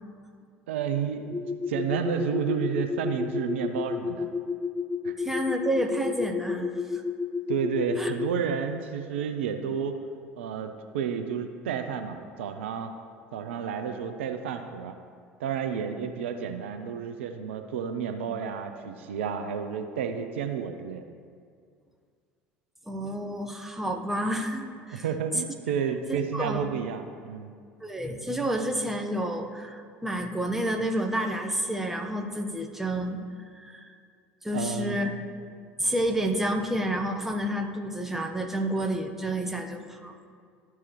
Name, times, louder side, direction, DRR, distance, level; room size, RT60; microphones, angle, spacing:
voice 1, 0.7-1.3 1.7-4.3 5.0-5.2 7.5-10.0 10.4-12.9 13.3-14.9 15.4-21.1 24.9-27.5 34.5-35.1, right 7 dB, 75° right, 7 dB, 0.5 m, -31 dB
sound 1, 1.3-8.4, left 5 dB, 15° left, 0.5 m, -31 dB
voice 2, 5.2-7.0 8.0-8.1 22.9-25.0 26.1-26.7 27.8-33.2 33.5-33.9 34.4-35.3 35.8-40.1, right 1 dB, 5° right, 2 dB, 0.9 m, -30 dB
12.5 x 4.7 x 3.0 m, 2.2 s
figure-of-eight pair, 70°, 7 cm